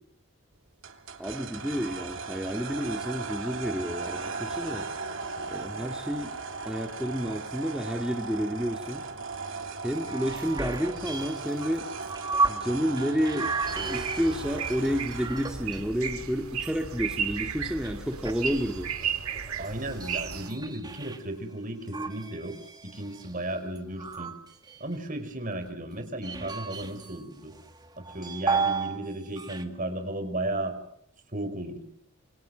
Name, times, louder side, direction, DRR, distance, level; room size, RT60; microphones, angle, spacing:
sound 1, 0.8-15.7, right 4 dB, 60° right, 3.3 m, -37 dB
voice 1, 1.2-4.9 5.5-6.4 6.6-9.0 9.8-11.9 12.5-13.5 13.9-18.9, equal, 5° right, 2 dB, 2.1 m, -30 dB
sound 2, 9.9-12.7 13.0-16.1 16.5-21.2 21.9-24.9 25.7-27.2 27.5-29.0 29.3-29.6, right 4 dB, 20° right, 2.1 m, -34 dB
sound 3, 13.6-20.5, right 7 dB, 90° right, 2.2 m, -34 dB
voice 2, 19.6-22.6 22.8-24.3 24.8-27.5 28.0-30.8 31.3-31.8, right 1 dB, 40° right, 8 dB, 5.1 m, -34 dB
28.0 x 26.0 x 7.8 m, 0.71 s
head